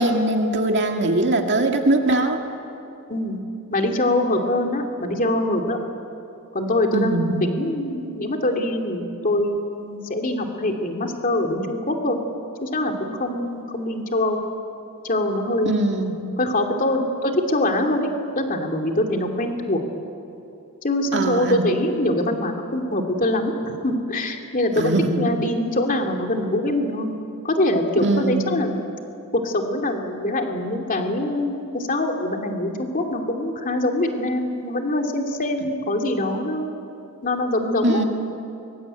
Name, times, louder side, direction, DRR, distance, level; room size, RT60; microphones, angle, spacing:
voice 1, 0.0-2.4 6.9-7.4 15.7-16.2 21.1-21.7 24.8-25.3 28.0-28.6 37.8-38.0, right 2 dB, 50° right, 3 dB, 2.2 m, -21 dB
voice 2, 3.7-5.8 6.5-12.2 12.6-14.4 15.0-15.8 16.4-19.8 20.8-27.1 27.4-28.8 29.3-36.7 37.2-38.0, left 1 dB, 40° left, 3 dB, 2.7 m, -23 dB
24.5 x 23.5 x 9.1 m, 2.8 s
head